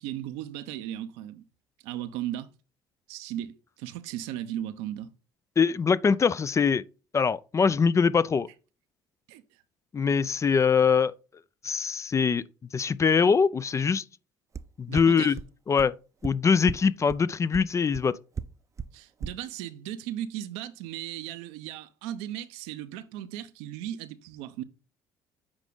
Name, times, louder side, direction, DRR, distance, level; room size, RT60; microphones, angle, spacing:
voice 1, 0.0-1.4 1.8-2.5 3.1-5.1 9.3-9.4 14.9-15.4 18.9-24.6, right 12 dB, 75° right, 0.8 m, -36 dB
voice 2, 5.6-6.8 7.1-8.5 9.9-11.1 11.6-12.4 12.7-14.0 14.8-15.4 15.7-15.9 16.2-18.2, left 5 dB, 30° left, 0.4 m, -23 dB
sound 1, 14.5-14.6 15.0-15.1 15.4-15.5 15.8-15.9 16.2-16.3 16.7-16.8 17.1-17.2 17.5-17.6 17.9-18.0 18.4-18.5 18.8-18.9 19.2-19.3, right 6 dB, 30° right, 0.6 m, -33 dB
8.8 x 5.0 x 3.9 m
hypercardioid pair, 65°, 10 cm